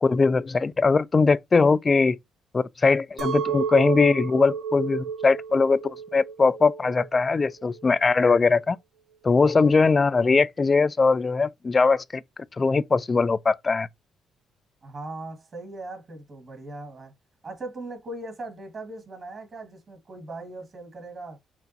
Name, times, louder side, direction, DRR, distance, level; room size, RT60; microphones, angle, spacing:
voice 1, 0.0-2.2 2.5-8.8 9.2-12.2 12.6-13.9, left 4 dB, 30° left, 0.3 m, -21 dB
Chink clink, 3.2-8.4, right 6 dB, 80° right, 1.2 m, -32 dB
voice 2, 14.8-17.1 17.4-21.4, right 2 dB, 45° right, 1.8 m, -39 dB
5.7 x 2.5 x 2.7 m
cardioid pair, 90°, 0 cm